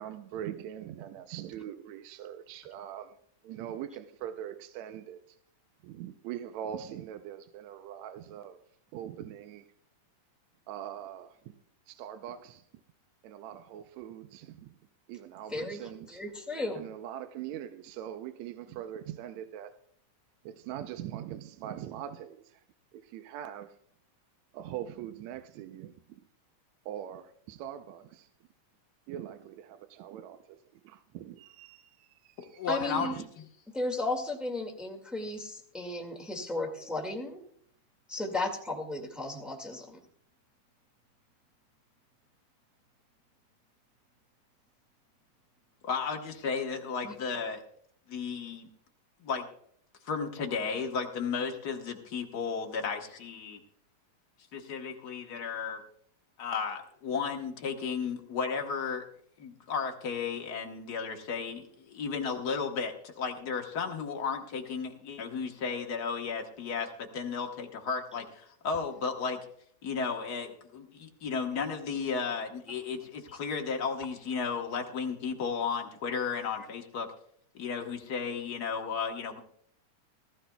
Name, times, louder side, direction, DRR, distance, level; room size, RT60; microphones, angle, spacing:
voice 1, 0.0-3.2 3.4-5.4 5.8-8.6 8.9-9.7 10.7-11.6 11.9-12.6 13.2-14.8 15.1-16.2 16.7-19.7 20.4-22.6 22.9-23.8 24.5-26.2 26.9-28.3 29.1-33.3, right 10 dB, 75° right, 1.8 m, -42 dB
voice 2, 16.1-16.8 32.7-33.2 33.7-37.4 38.1-40.0 47.0-47.1, left 2 dB, ahead, 1.2 m, -34 dB
voice 3, 32.6-33.1 33.4-33.5 45.8-47.6 48.1-48.7 49.2-49.5 50.0-53.6 54.5-55.8 56.4-59.0 59.4-69.4 69.8-77.1 77.5-79.4, left 5 dB, 55° left, 1.0 m, -34 dB
19.0 x 14.0 x 2.3 m
omnidirectional pair, 3.6 m